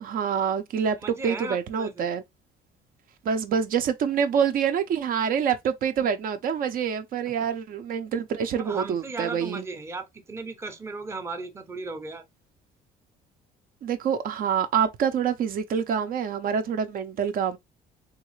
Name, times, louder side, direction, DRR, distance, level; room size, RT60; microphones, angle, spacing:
voice 1, 0.0-2.2 3.2-9.6 13.8-17.6, right 7 dB, 55° right, 0.6 m, -26 dB
voice 2, 1.0-2.1 7.3-7.5 8.6-12.2, right 3 dB, 15° right, 0.6 m, -36 dB
3.5 x 2.4 x 3.0 m
cardioid pair, 110°, 17 cm